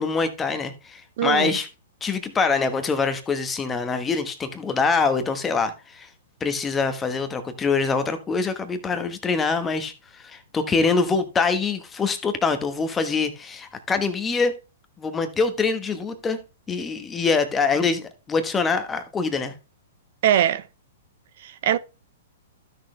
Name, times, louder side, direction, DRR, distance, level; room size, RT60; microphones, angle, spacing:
voice 1, 0.0-1.7 2.0-6.1 6.4-14.5 15.0-16.4 16.7-19.5, left 4 dB, 15° left, 1.2 m, -24 dB
voice 2, 1.2-1.5 20.2-20.6 21.4-21.8, right 11 dB, 55° right, 0.5 m, -21 dB
12.5 x 6.5 x 3.3 m
hypercardioid pair, 150°, 0 cm